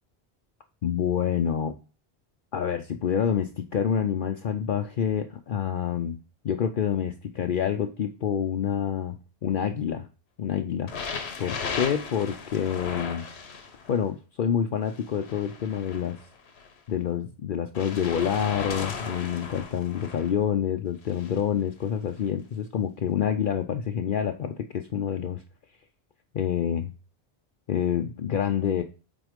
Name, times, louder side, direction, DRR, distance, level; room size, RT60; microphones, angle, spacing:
voice 1, 0.8-1.8 2.5-6.2 6.4-10.1 10.4-13.2 13.9-16.2 16.9-25.4 26.3-26.9 27.7-28.8, left 8 dB, 60° left, 6 dB, 0.7 m, -27 dB
sound 1, 10.9-14.0 14.9-16.7 17.7-20.3 21.0-21.4 22.2-22.3, left 5 dB, 85° left, 1.2 m, -36 dB
6.1 x 4.3 x 5.1 m, 0.35 s
omnidirectional pair, 1.1 m